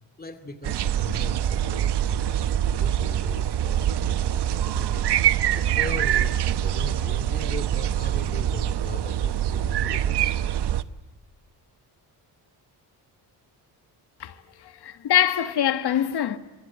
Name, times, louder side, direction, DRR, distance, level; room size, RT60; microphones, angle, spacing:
voice 1, 0.2-5.1 5.5-10.4, left 2 dB, 20° left, 2.5 m, -39 dB
sound 1, 0.6-10.8, right 11 dB, 70° right, 1.0 m, -24 dB
voice 2, 14.6-16.4, left 10 dB, 70° left, 1.8 m, -24 dB
28.0 x 22.5 x 7.5 m
cardioid pair, 110°, 41 cm